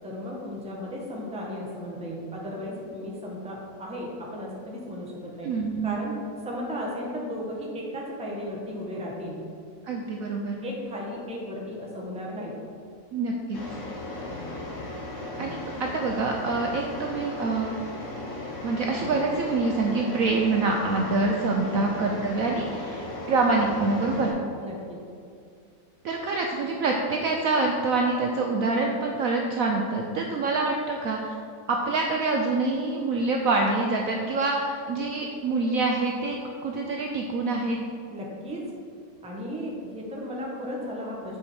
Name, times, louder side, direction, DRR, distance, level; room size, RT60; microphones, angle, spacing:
voice 1, 0.0-5.5 5.8-6.1 6.4-9.4 10.6-12.6 21.6-21.9 24.6-25.0 38.1-38.6 39.2-41.4, equal, 5° right, -3 dB, 0.5 m, -35 dB
voice 2, 5.4-6.0 9.9-10.6 13.1-13.6 15.1-17.8 18.6-24.3 26.0-31.3 31.7-36.4 36.6-37.8, right 3 dB, 90° right, 1 dB, 0.7 m, -26 dB
sound 1, 13.5-24.3, left 1 dB, 70° left, 2.0 m, -36 dB
7.5 x 4.6 x 4.3 m, 2.4 s
omnidirectional pair, 2.1 m